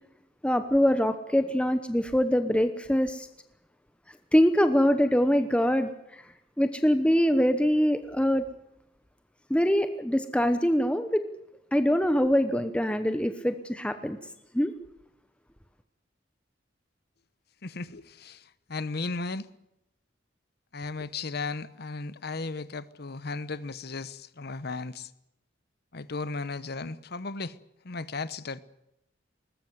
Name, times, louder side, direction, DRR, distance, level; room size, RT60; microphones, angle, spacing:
voice 1, 0.4-3.3 4.3-6.2 6.6-8.5 9.5-11.2 11.7-14.2 14.5-14.7, equal, 5° left, 1.0 m, -24 dB
voice 2, 17.6-19.5 20.7-25.1 25.9-27.6 27.8-28.6, left 3 dB, 60° left, 1.0 m, -35 dB
21.0 x 19.0 x 8.0 m
head